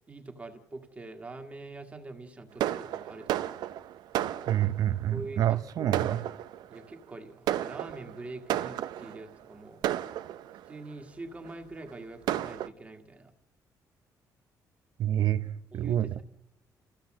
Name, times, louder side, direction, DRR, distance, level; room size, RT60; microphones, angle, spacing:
voice 1, 0.1-3.4 5.1-6.0 6.7-9.8 10.7-13.3 15.7-16.2, right 2 dB, 20° right, 1.8 m, -44 dB
Fireworks, 2.6-4.9 5.6-5.7 5.9-6.8 7.5-9.2 9.8-10.7 11.5-11.6 11.9-12.0 12.3-12.7, right 12 dB, 90° right, 0.8 m, -32 dB
voice 2, 4.5-6.2 15.0-16.2, right 11 dB, 60° right, 0.8 m, -28 dB
27.5 x 15.0 x 7.6 m
cardioid pair, 160°, 7 cm